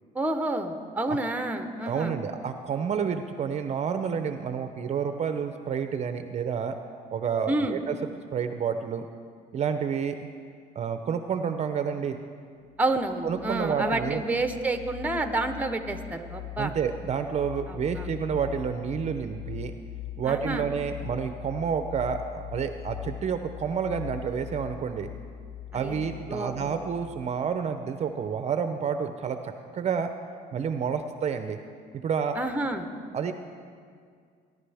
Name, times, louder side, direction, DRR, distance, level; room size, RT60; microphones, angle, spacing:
voice 1, 0.1-2.2 7.5-7.8 12.8-16.7 17.7-18.1 20.2-20.7 25.7-25.9 26.3-26.8 32.3-32.9, right 2 dB, 10° right, 7 dB, 0.9 m, -29 dB
voice 2, 1.9-6.8 7.1-9.1 9.5-10.2 10.7-12.2 13.2-14.2 16.6-19.7 20.2-25.1 25.7-30.1 30.5-31.6 31.9-32.4 33.1-33.3, right 7 dB, 40° right, 8 dB, 0.6 m, -29 dB
sound 1, 12.7-27.2, left 10 dB, 80° left, 1.4 m, -41 dB
19.5 x 10.5 x 3.4 m, 2.1 s
cardioid pair, 110°, 17 cm